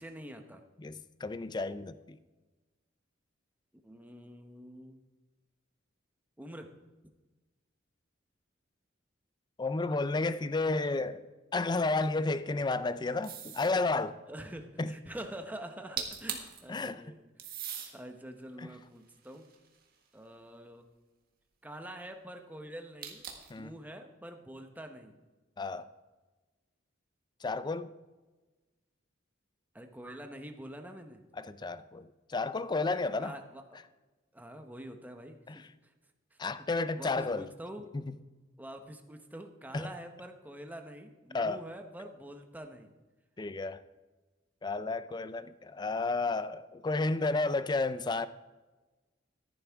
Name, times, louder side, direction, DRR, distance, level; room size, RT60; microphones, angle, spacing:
voice 1, 0.0-0.6 3.8-5.0 6.4-6.7 14.3-17.2 17.5-17.6 17.9-19.5 20.1-20.8 21.6-23.2 23.5-25.2 29.7-31.2 33.2-33.8 34.3-35.9 36.3-36.4 36.9-37.9 38.6-42.9, right 1 dB, 10° right, 0.9 m, -46 dB
voice 2, 0.8-2.2 9.6-11.2 11.5-14.2 14.8-14.9 16.7-17.0 18.6-18.7 23.5-23.7 25.6-25.9 27.4-27.9 31.4-33.4 35.5-35.6 36.4-37.5 37.9-38.1 39.7-39.9 41.3-41.6 43.4-43.8 44.6-48.3, left 3 dB, 20° left, 0.4 m, -32 dB
sound 1, 13.2-13.8 15.7-15.8 16.0-16.6 17.4-17.9 18.6-20.1 23.0-23.6, right 8 dB, 50° right, 1.6 m, -40 dB
14.0 x 11.0 x 3.5 m
head